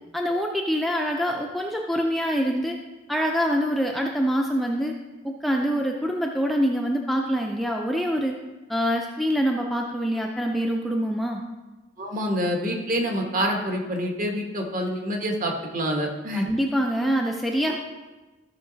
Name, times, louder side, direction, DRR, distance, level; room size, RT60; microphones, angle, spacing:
voice 1, 0.1-2.8 3.1-4.9 5.2-8.4 8.7-11.4 16.3-17.7, equal, ahead, 0 dB, 0.5 m, -25 dB
voice 2, 12.0-16.5 17.7-17.8, equal, 40° right, 1 dB, 1.4 m, -27 dB
13.5 x 5.7 x 4.0 m, 1.2 s
head